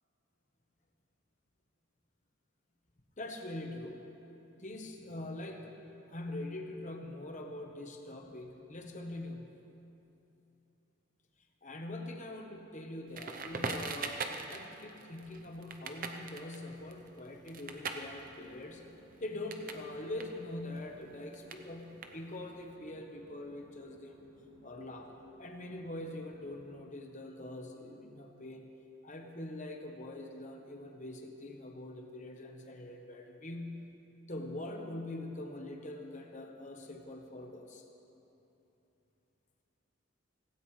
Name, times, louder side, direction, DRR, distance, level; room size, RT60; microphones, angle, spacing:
voice 1, 3.2-9.5 11.6-14.2 14.5-18.8 19.2-24.2 24.6-25.1 25.4-28.7 29.0-33.9 34.3-37.8, left 1 dB, 35° left, 3 dB, 1.2 m, -43 dB
Crackle, 13.1-19.9 20.1-22.6, right 4 dB, 40° right, 0.8 m, -42 dB
Conversation / Chatter / Fixed-wing aircraft airplane, 18.7-26.7, right 1 dB, 75° right, 1.7 m, -63 dB
17.0 x 16.5 x 3.3 m, 2.9 s
head